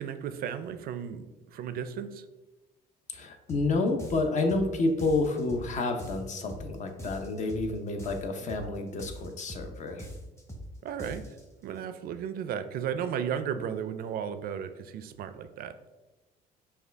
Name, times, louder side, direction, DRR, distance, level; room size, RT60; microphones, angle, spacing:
voice 1, 0.0-2.2 10.8-11.2 11.6-15.7, right 8 dB, 60° right, 10 dB, 0.4 m, -34 dB
voice 2, 3.1-10.1, left 3 dB, 45° left, 5 dB, 0.6 m, -29 dB
sound 1, 3.5-3.7 4.0-4.7 5.0-5.7 6.0-6.7 7.0-7.7 8.0-8.7 9.0-9.7 10.0-10.7 11.0-11.4, equal, 15° left, 0.9 m, -42 dB
5.3 x 2.3 x 3.3 m, 1.1 s
cardioid pair, 110°, 17 cm